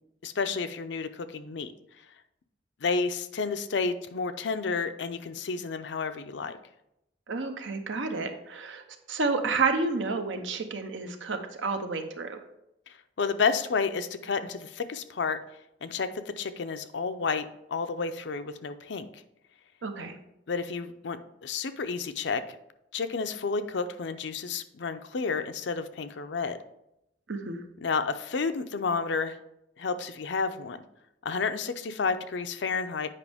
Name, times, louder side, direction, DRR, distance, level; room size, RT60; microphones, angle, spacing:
voice 1, 0.2-1.7 2.8-6.6 12.9-15.4 15.8-19.2 20.5-22.6 22.9-26.6 27.8-29.4 29.8-30.8 31.2-33.1, left 4 dB, 65° left, 10 dB, 0.5 m, -31 dB
voice 2, 7.3-8.8 9.1-12.4 19.8-20.1 27.3-27.6, right 4 dB, 80° right, 6 dB, 0.8 m, -30 dB
8.4 x 5.2 x 3.5 m, 0.82 s
head